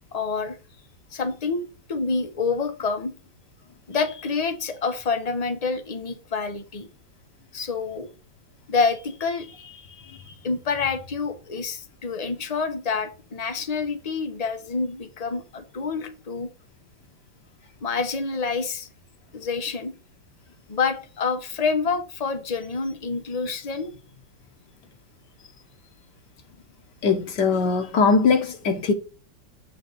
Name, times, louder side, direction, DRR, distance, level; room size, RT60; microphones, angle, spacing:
voice 1, 0.1-0.6 1.1-1.6 1.9-3.1 3.9-6.9 7.5-8.1 8.7-16.5 17.8-18.9 19.3-19.9 20.7-23.9, left 4 dB, 45° left, 0.4 m, -27 dB
voice 2, 27.0-28.9, left 4 dB, 65° left, 1.5 m, -20 dB
7.6 x 4.7 x 3.9 m
omnidirectional pair, 2.1 m